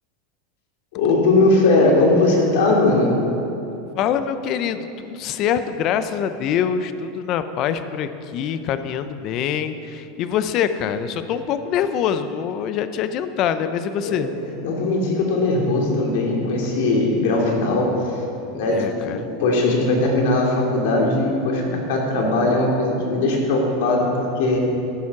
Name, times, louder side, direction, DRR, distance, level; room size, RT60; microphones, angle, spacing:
voice 1, 0.9-3.2 14.0-14.2 14.6-18.0 18.5-24.6, left 2 dB, 70° left, -1 dB, 2.5 m, -19 dB
voice 2, 4.0-14.3 18.7-19.3, left 8 dB, 40° left, 11 dB, 0.6 m, -24 dB
13.0 x 7.1 x 5.9 m, 2.8 s
supercardioid pair, 155°, 0 cm